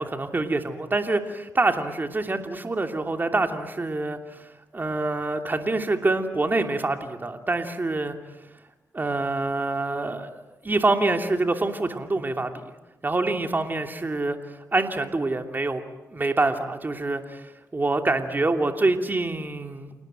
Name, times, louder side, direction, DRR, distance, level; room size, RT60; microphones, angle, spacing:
voice 1, 0.0-4.5 4.7-8.2 8.9-10.3 10.6-12.7 13.0-14.4 14.7-15.8 16.1-17.4 17.7-19.9, right 2 dB, 30° right, 6 dB, 2.9 m, -26 dB
28.5 x 19.0 x 9.1 m, 1.1 s
cardioid pair, 60°, 6 cm